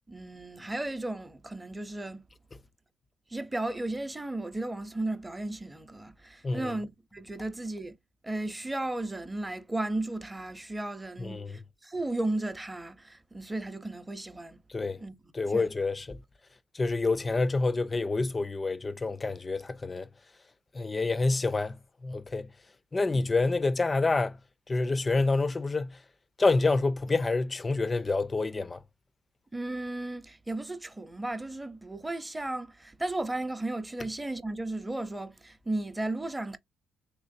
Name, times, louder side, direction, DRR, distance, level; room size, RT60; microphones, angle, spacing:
voice 1, 0.1-2.3 3.3-8.0 8.2-14.6 15.0-15.7 23.1-23.2 29.5-36.6, right 2 dB, 15° right, 0.6 m, -35 dB
voice 2, 11.2-11.6 14.7-15.0 15.3-16.2 16.7-20.1 20.7-21.8 22.0-22.5 22.9-24.4 24.7-26.0 26.4-28.8, left 3 dB, 25° left, 0.3 m, -27 dB
3.4 x 3.0 x 2.6 m
cardioid pair, 90°, 0 cm